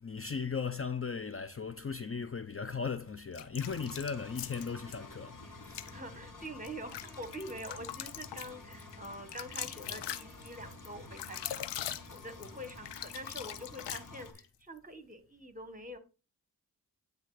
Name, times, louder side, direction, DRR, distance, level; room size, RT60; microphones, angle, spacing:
voice 1, 0.0-5.4 5.6-5.9, left 5 dB, 30° left, 0.8 m, -37 dB
sound 1, 3.3-5.0 5.6-5.9 6.4-14.5, left 11 dB, 85° left, 0.7 m, -42 dB
Engine, 3.6-14.3, left 3 dB, 50° left, 2.0 m, -50 dB
Wind instrument woodwind instrument, 4.1-10.8, equal, 5° left, 3.5 m, -62 dB
voice 2, 5.9-11.7 12.1-16.0, right 1 dB, 20° right, 1.8 m, -45 dB
9.6 x 3.7 x 6.6 m
supercardioid pair, 45°, 41 cm